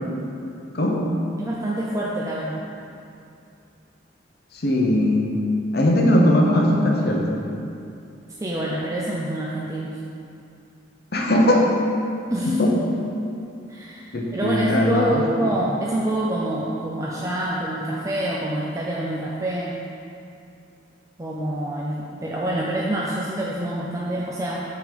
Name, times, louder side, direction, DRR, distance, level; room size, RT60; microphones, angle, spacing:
voice 1, 1.4-2.7 8.4-9.9 12.3-12.6 13.7-19.8 21.2-24.6, right 1 dB, 15° right, -4 dB, 0.4 m, -26 dB
voice 2, 4.5-5.3 5.7-7.4 11.1-11.7 12.4-12.7 14.1-15.5, left 1 dB, 50° left, 0 dB, 0.8 m, -19 dB
5.9 x 3.7 x 5.1 m, 2.5 s
head